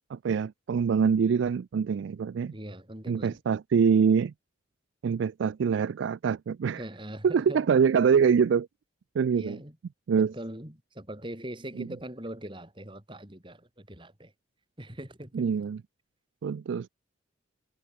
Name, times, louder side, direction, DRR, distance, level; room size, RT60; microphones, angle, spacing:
voice 1, 0.1-2.5 3.1-4.3 5.0-6.8 7.2-8.7 9.2-9.6 10.1-10.3 11.8-11.9 15.3-15.8 16.4-16.9, right 6 dB, 75° right, 0.3 m, -24 dB
voice 2, 2.4-3.4 6.7-7.7 9.3-9.8 10.2-14.3 14.8-15.5, right 1 dB, 25° right, 3.9 m, -41 dB
head